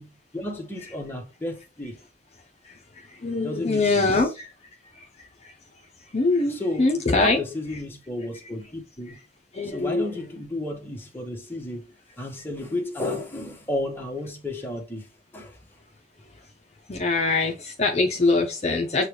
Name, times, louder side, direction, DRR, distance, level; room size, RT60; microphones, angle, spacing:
voice 1, 0.0-2.0 3.4-4.2 6.5-6.9 7.1-9.2 9.6-15.1 15.3-15.6, left 1 dB, 15° left, 0.9 m, -32 dB
voice 2, 2.6-4.5 4.9-5.5 6.1-7.4 9.5-10.1 16.9-19.1, left 3 dB, 40° left, 0.6 m, -24 dB
6.6 x 2.2 x 3.1 m
head